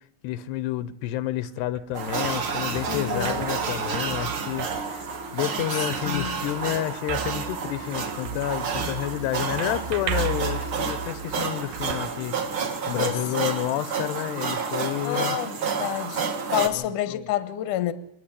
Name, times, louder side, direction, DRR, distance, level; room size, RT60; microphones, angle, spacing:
voice 1, 0.2-15.4 16.7-17.3, left 14 dB, 85° left, 3.0 m, -30 dB
sound 1, 1.4-12.9, right 7 dB, 80° right, 1.8 m, -36 dB
sound 2, 1.9-16.7, right 5 dB, 45° right, 1.9 m, -30 dB
voice 2, 2.9-3.5 6.1-6.4 12.9-13.2 15.0-16.2 16.5-17.9, left 13 dB, 65° left, 2.3 m, -28 dB
28.0 x 9.7 x 9.8 m
omnidirectional pair, 4.8 m